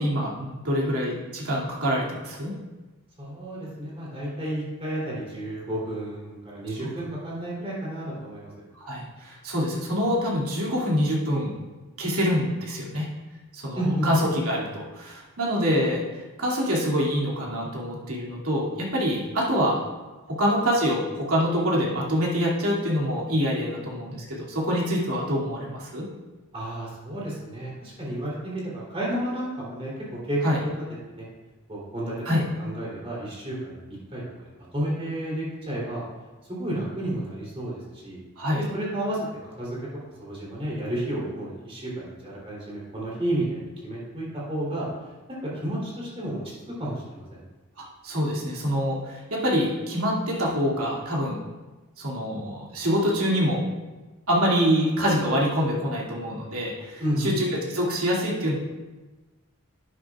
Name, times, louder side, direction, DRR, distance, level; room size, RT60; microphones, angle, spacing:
voice 1, 0.0-2.5 6.8-6.9 8.7-11.5 12.0-13.1 13.5-16.0 16.4-19.8 20.3-26.1 30.4-30.6 32.3-32.4 38.4-38.6 47.8-51.4 52.0-53.6 54.3-58.6, equal, 80° right, -4 dB, 2.5 m, -25 dB
voice 2, 3.2-8.5 13.7-14.1 26.5-30.4 31.1-31.3 31.7-32.1 32.6-36.0 36.5-38.2 38.5-39.2 39.4-44.9 45.4-46.4 46.8-47.4 57.0-57.3, right 1 dB, 25° right, -6 dB, 3.3 m, -31 dB
11.0 x 9.3 x 2.4 m, 1.2 s
head